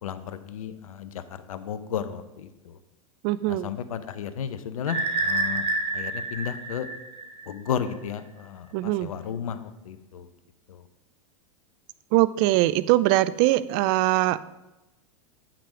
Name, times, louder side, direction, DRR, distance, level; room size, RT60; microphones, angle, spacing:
voice 1, 0.0-1.2 1.5-2.8 3.5-5.6 5.9-6.9 7.5-10.3 10.7-10.8, left 8 dB, 85° left, 11 dB, 0.7 m, -33 dB
voice 2, 3.2-3.7 8.7-9.1 12.1-14.4, right 16 dB, 50° right, 17 dB, 0.5 m, -22 dB
sound 1, 4.9-7.7, right 2 dB, 35° right, 1.2 m, -28 dB
8.8 x 5.9 x 5.0 m, 1.0 s
hypercardioid pair, 110°, 17 cm